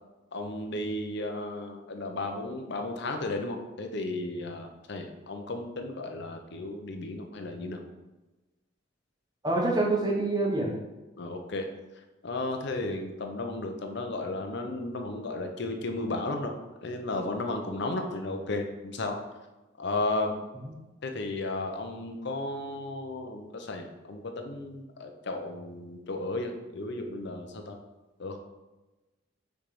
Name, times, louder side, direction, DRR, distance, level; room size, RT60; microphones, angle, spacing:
voice 1, 0.3-7.8 11.2-11.7 12.2-16.5 16.8-19.2 19.8-20.4 21.0-27.8 28.2-28.4, left 2 dB, 65° left, 4 dB, 0.8 m, -34 dB
voice 2, 9.4-10.8 20.6-20.8, right 2 dB, 20° right, -2 dB, 1.2 m, -27 dB
6.4 x 3.5 x 5.0 m, 1.1 s
head